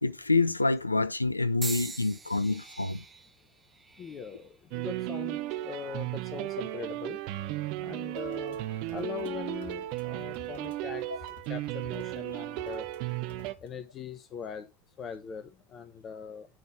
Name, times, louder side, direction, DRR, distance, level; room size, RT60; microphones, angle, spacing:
voice 1, 0.0-3.0 11.1-11.2, left 3 dB, 90° left, 0.4 m, -27 dB
sound 1, 1.6-5.7 6.5-6.9 7.8-8.0, right 4 dB, 15° right, 1.3 m, -43 dB
voice 2, 4.0-7.2 7.8-8.6 8.9-11.0 11.5-12.9 13.6-14.7 15.0-16.5, left 6 dB, 40° left, 1.1 m, -41 dB
sound 2, 4.7-13.5, right 16 dB, 55° right, 0.5 m, -35 dB
sound 3, 8.2-13.7, left 5 dB, 65° left, 1.8 m, -54 dB
9.1 x 4.3 x 5.0 m
figure-of-eight pair, 70°, 0 cm